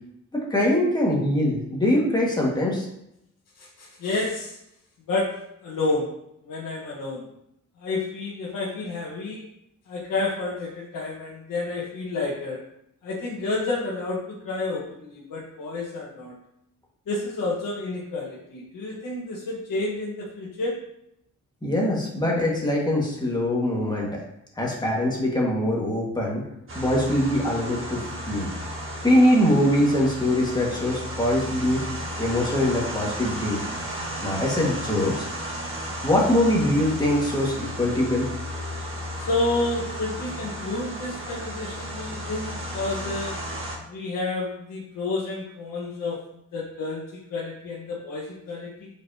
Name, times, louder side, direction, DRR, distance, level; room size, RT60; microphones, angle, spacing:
voice 1, 0.3-2.9 21.6-24.1 24.6-26.4 26.7-28.5 29.0-31.8 32.2-33.6 34.2-35.3 36.0-38.3, left 1 dB, 15° left, -3 dB, 1.8 m, -23 dB
voice 2, 3.6-4.6 5.1-5.3 5.6-6.1 6.5-7.2 7.8-9.4 9.9-12.6 13.0-16.4 17.1-20.8 39.2-43.3 43.9-46.2 46.5-48.9, left 2 dB, 85° left, -6 dB, 1.5 m, -30 dB
sound 1, 26.7-43.8, equal, 40° right, 1.5 m, -34 dB
8.1 x 5.1 x 2.9 m, 0.78 s
wide cardioid pair, 140°, 32 cm